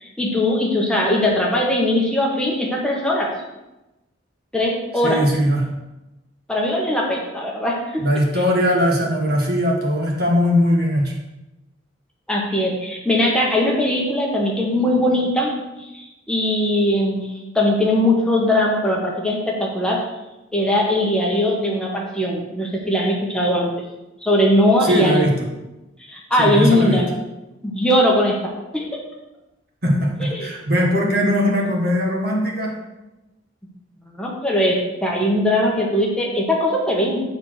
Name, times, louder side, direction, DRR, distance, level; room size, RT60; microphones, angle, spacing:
voice 1, 0.0-3.3 4.5-5.2 6.5-8.0 12.3-15.5 15.8-17.3 17.5-20.0 20.5-23.7 24.2-25.2 26.0-27.1 27.6-28.3 28.7-28.9 30.2-30.5 34.1-37.2, left 1 dB, 5° left, -3 dB, 1.2 m, -20 dB
voice 2, 5.0-5.7 8.0-11.2 24.8-25.5 26.4-27.0 29.8-32.8, equal, 50° right, -1 dB, 1.7 m, -20 dB
8.5 x 4.3 x 6.4 m, 0.99 s
head